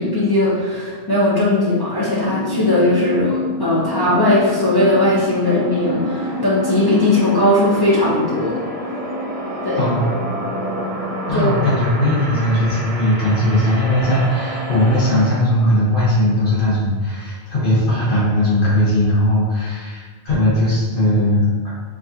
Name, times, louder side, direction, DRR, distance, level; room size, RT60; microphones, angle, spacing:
voice 1, 0.0-8.6 9.6-9.9 11.3-11.5, left 1 dB, 30° left, -8 dB, 0.5 m, -18 dB
sound 1, 2.2-15.3, equal, 35° right, 0.9 m, -27 dB
voice 2, 9.8-10.1 11.3-21.4, left 1 dB, 55° left, -9 dB, 1.2 m, -18 dB
4.6 x 2.4 x 2.8 m, 1.5 s
omnidirectional pair, 1.1 m